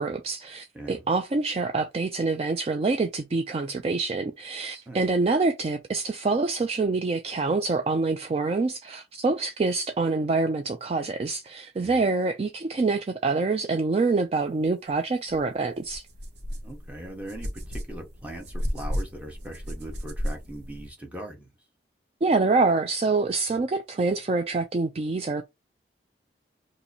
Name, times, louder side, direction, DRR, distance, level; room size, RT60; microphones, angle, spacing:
voice 1, 0.0-16.0 22.2-25.4, right 3 dB, 35° right, 0.3 m, -26 dB
voice 2, 0.7-1.1 4.9-5.0 11.8-12.0 16.6-21.5, right 1 dB, 10° right, 1.0 m, -40 dB
sound 1, 15.3-15.4 15.8-20.9, equal, 75° right, 0.9 m, -34 dB
2.8 x 2.5 x 3.9 m
head